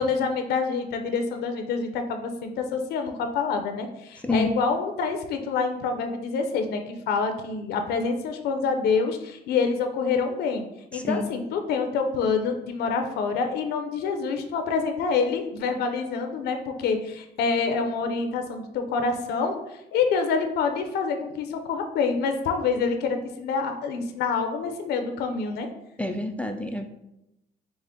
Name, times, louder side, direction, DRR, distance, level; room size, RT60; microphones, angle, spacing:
voice 1, 0.0-10.7 10.9-19.6 19.9-25.7, left 5 dB, 75° left, 6 dB, 0.5 m, -27 dB
voice 2, 10.9-11.3 26.0-26.9, left 2 dB, 5° left, 5 dB, 0.3 m, -28 dB
4.9 x 2.1 x 3.6 m, 0.88 s
cardioid pair, 110°, 17 cm